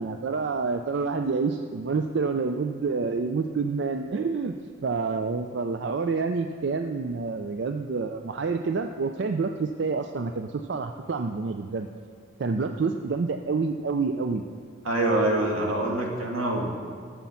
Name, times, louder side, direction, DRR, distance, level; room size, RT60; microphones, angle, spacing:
voice 1, 0.0-4.5 4.8-11.9 12.4-14.4, right 4 dB, 60° right, 6 dB, 0.4 m, -28 dB
voice 2, 14.8-16.7, right 1 dB, 90° right, -1 dB, 1.9 m, -25 dB
11.5 x 7.1 x 5.7 m, 2.3 s
head